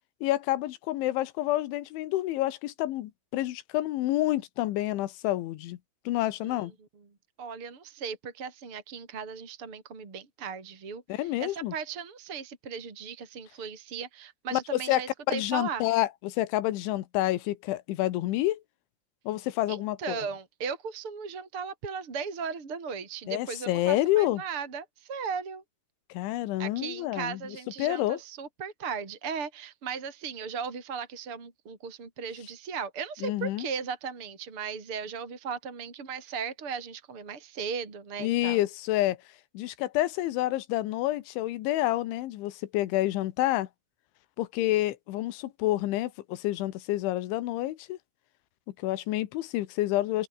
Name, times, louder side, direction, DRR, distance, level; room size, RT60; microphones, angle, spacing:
voice 1, 0.2-5.8 6.1-6.7 11.1-11.7 14.5-15.0 15.3-18.6 19.3-20.2 23.3-24.4 26.1-27.4 27.8-28.2 33.2-33.7 38.2-39.2 39.6-43.7 44.4-48.0 48.8-50.3, left 15 dB, 80° left, 3.6 m, -28 dB
voice 2, 7.4-11.0 11.4-15.9 19.7-25.6 26.6-38.6, right 6 dB, 30° right, 4.5 m, -37 dB
omnidirectional pair, 5.4 m